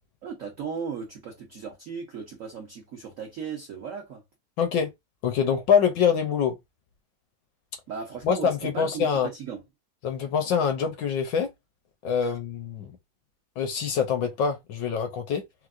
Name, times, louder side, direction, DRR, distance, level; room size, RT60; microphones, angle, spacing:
voice 1, 0.2-4.2 7.9-9.6 12.2-12.4, right 6 dB, 75° right, 0.7 m, -36 dB
voice 2, 4.6-4.9 5.2-6.6 8.2-9.3 10.0-11.5 12.0-13.0 13.6-15.4, left 7 dB, 70° left, 1.2 m, -25 dB
4.4 x 2.1 x 2.4 m
omnidirectional pair, 2.3 m